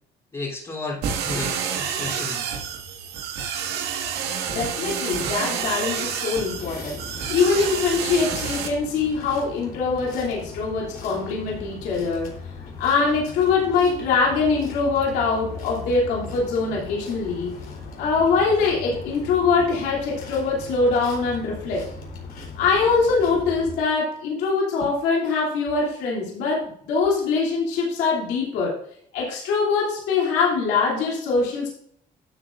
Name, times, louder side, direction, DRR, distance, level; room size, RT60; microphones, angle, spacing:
voice 1, 0.3-2.4, left 3 dB, 25° left, -6 dB, 3.2 m, -33 dB
sound 1, 1.0-8.7, right 7 dB, 85° right, 1.6 m, -29 dB
voice 2, 4.5-12.3 12.8-17.5 18.0-21.9 22.6-28.8 29.1-31.7, left 4 dB, 90° left, -4 dB, 2.8 m, -23 dB
sound 2, 6.5-23.8, left 4 dB, 60° left, 3.4 m, -38 dB
12.0 x 7.8 x 2.5 m, 0.66 s
cardioid pair, 110°, 17 cm